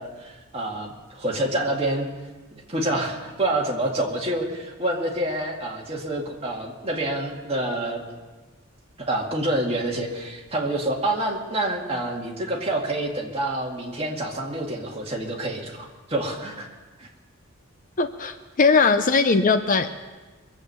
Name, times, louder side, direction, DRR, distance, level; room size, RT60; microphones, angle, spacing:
voice 1, 0.0-2.1 2.5-8.0 9.0-16.7 17.0-17.1, right 1 dB, 25° right, -1 dB, 2.1 m, -27 dB
voice 2, 18.0-20.0, left 4 dB, 40° left, 9 dB, 0.6 m, -20 dB
23.0 x 8.2 x 6.8 m, 1.3 s
head